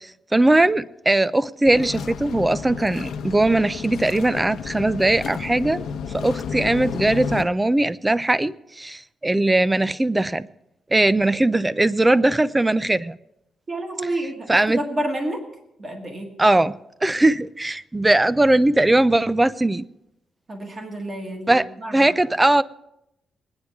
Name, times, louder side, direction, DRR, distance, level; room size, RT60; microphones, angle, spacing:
voice 1, 0.0-5.8 6.1-10.5 10.9-13.2 14.5-14.8 16.4-16.7 17.0-19.9 21.5-22.6, right 2 dB, 10° right, 16 dB, 0.3 m, -20 dB
sound 1, 1.6-7.4, left 6 dB, 85° left, 0.8 m, -32 dB
voice 2, 13.7-15.4 15.8-16.3 20.5-22.1, right 1 dB, 30° right, 2 dB, 1.7 m, -29 dB
22.0 x 9.6 x 3.5 m, 0.84 s
wide cardioid pair, 175°, 0 cm